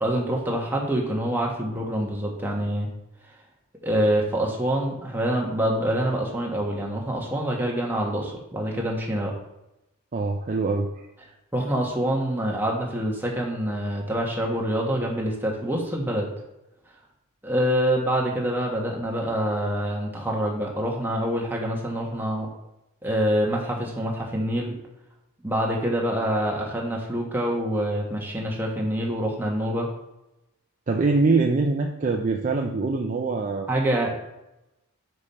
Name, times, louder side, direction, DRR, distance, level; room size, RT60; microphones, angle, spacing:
voice 1, 0.0-2.9 3.8-9.3 11.5-16.3 17.4-22.5 23.0-24.8 25.4-29.9 33.7-34.1, right 1 dB, 10° right, -2 dB, 1.2 m, -26 dB
voice 2, 10.1-10.9 30.9-33.7, right 3 dB, 35° right, 2 dB, 0.4 m, -23 dB
5.4 x 5.2 x 4.2 m, 0.91 s
head